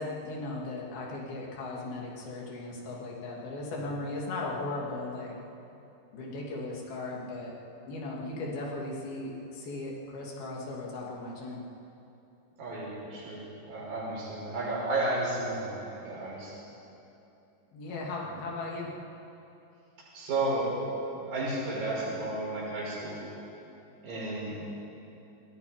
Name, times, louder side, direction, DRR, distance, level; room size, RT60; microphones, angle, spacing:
voice 1, 0.0-5.4 6.1-7.5 7.9-11.6 17.7-18.9, left 2 dB, 85° left, -2 dB, 4.6 m, -37 dB
voice 2, 12.6-13.4 13.7-16.5 17.9-18.0 20.1-20.7 21.2-23.2 24.0-24.8, right 2 dB, 70° right, -6 dB, 7.4 m, -32 dB
26.0 x 22.0 x 5.2 m, 2.9 s
omnidirectional pair, 4.2 m